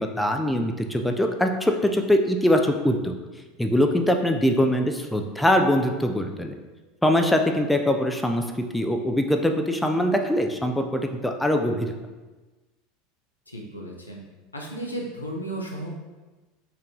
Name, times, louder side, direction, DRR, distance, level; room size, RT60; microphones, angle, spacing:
voice 1, 0.0-3.2 3.6-6.5 7.0-8.4 8.7-11.9, left 1 dB, 5° left, 4 dB, 0.3 m, -22 dB
voice 2, 13.5-14.2 14.5-15.9, right 1 dB, 85° left, -1 dB, 0.6 m, -34 dB
4.3 x 2.6 x 3.0 m, 1.2 s
figure-of-eight pair, 75°, 0 cm